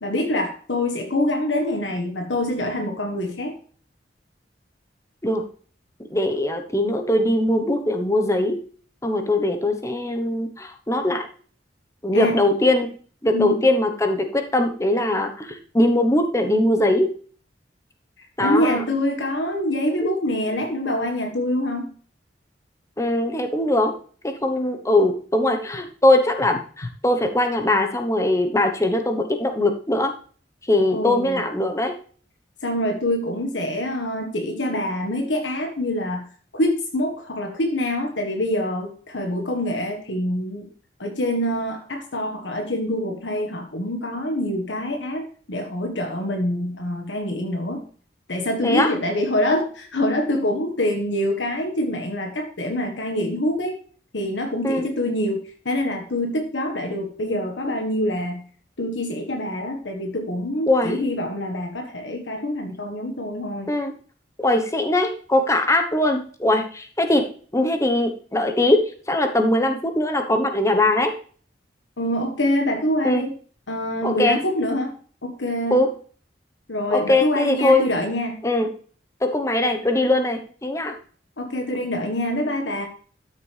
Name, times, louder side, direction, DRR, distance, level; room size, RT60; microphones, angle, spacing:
voice 1, 0.0-3.5 12.1-12.3 13.3-13.5 18.4-21.9 30.9-31.5 32.6-36.3 36.5-40.7 41.0-47.8 48.3-53.7 54.1-55.4 55.6-58.4 58.8-63.7 72.0-73.3 73.7-74.9 75.2-75.8 76.7-78.4 81.4-82.9, left 1 dB, 90° left, 3 dB, 1.5 m, -25 dB
voice 2, 6.1-8.6 9.0-11.3 12.0-12.9 13.2-17.1 18.4-18.8 20.0-20.1 23.0-23.9 24.2-30.1 30.7-31.9 48.6-48.9 54.6-54.9 60.7-61.0 63.7-63.9 64.4-67.3 67.5-71.2 73.0-73.3 74.0-74.4 75.7-75.9 76.9-77.9 78.4-78.7 79.2-81.0, left 1 dB, 15° left, 5 dB, 1.0 m, -21 dB
12.5 x 6.7 x 3.4 m, 0.43 s
head